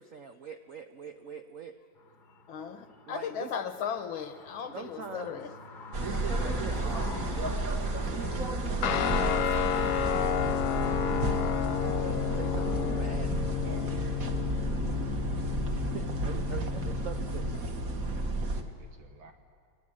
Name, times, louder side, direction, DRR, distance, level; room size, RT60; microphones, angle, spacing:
voice 1, 0.0-1.8 3.1-3.5 4.7-5.5 6.0-9.9 12.3-13.5 15.7-17.6, right 6 dB, 65° right, 6 dB, 0.8 m, -44 dB
sound 1, 2.0-13.7, left 3 dB, 35° left, 0.9 m, -48 dB
voice 2, 2.5-5.5, left 7 dB, 80° left, 8 dB, 2.0 m, -36 dB
sound 2, 5.9-18.6, right 2 dB, 45° right, 1.7 m, -32 dB
Guitar, 8.8-17.6, left 9 dB, 60° left, 1.2 m, -31 dB
voice 3, 13.1-14.1 18.6-19.3, right 4 dB, 80° right, 4 dB, 2.1 m, -51 dB
23.5 x 19.5 x 7.8 m, 2.1 s
omnidirectional pair, 2.2 m